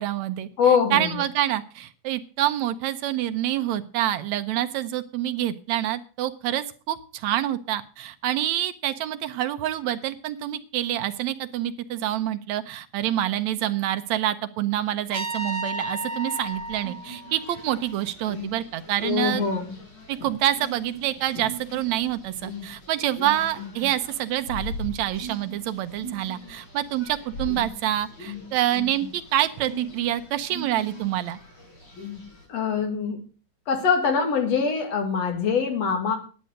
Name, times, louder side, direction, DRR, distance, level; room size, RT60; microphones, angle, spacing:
voice 1, 0.0-19.4 20.1-31.4, right 13 dB, 75° right, 9 dB, 2.0 m, -27 dB
voice 2, 0.6-1.1 19.0-19.6 32.5-33.2 33.7-36.2, left 6 dB, 60° left, 4 dB, 3.1 m, -23 dB
Trumpet, 15.1-18.0, right 1 dB, 45° right, 0.8 m, -33 dB
sound 1, 15.9-32.4, left 1 dB, 80° left, 7.2 m, -40 dB
10.5 x 9.1 x 6.4 m, 0.38 s
omnidirectional pair, 3.3 m